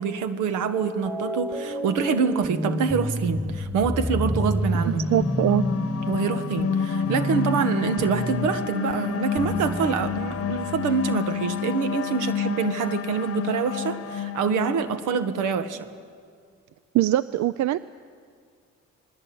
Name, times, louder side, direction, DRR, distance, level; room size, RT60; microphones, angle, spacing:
voice 1, 0.0-5.0 6.1-15.9, right 6 dB, 90° right, 10 dB, 1.6 m, -26 dB
sound 1, 0.7-10.8, left 1 dB, 5° right, 4.9 m, -29 dB
sound 2, 4.8-15.3, left 7 dB, 50° left, 1.0 m, -30 dB
voice 2, 4.9-5.7 16.9-17.8, right 14 dB, 70° right, 16 dB, 0.6 m, -22 dB
27.0 x 20.5 x 8.7 m, 2.1 s
cardioid pair, 90°, 30 cm